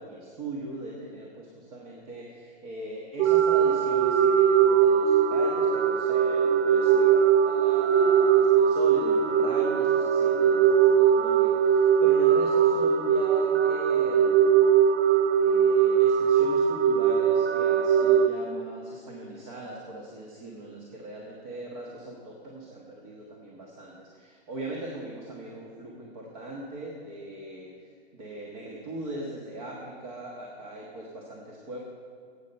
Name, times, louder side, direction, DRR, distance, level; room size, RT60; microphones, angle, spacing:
voice 1, 0.0-14.7 15.4-27.7 28.1-31.8, right 1 dB, 35° right, -2 dB, 1.4 m, -40 dB
sound 1, 3.2-18.3, right 8 dB, 80° right, 0.8 m, -21 dB
12.5 x 8.5 x 5.4 m, 2.2 s
hypercardioid pair, 160°, 33 cm